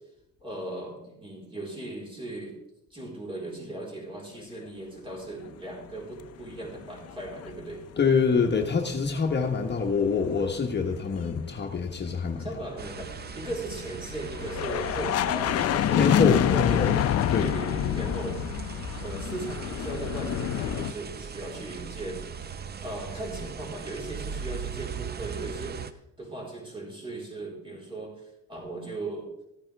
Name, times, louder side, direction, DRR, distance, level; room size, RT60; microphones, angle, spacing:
voice 1, 0.4-2.6 2.9-7.8 12.4-16.0 16.5-17.1 17.4-18.4 19.0-22.6 22.8-29.3, right 2 dB, 15° right, -2 dB, 4.1 m, -38 dB
sound 1, 6.8-8.9 9.1-20.9, left 11 dB, 55° left, 0.5 m, -28 dB
voice 2, 8.0-12.5 15.9-16.9 17.3-17.5, left 5 dB, 35° left, 2 dB, 1.2 m, -25 dB
sound 2, 12.8-25.9, right 7 dB, 35° right, 0.6 m, -39 dB
14.5 x 8.8 x 3.4 m, 0.85 s
cardioid pair, 90°, 30 cm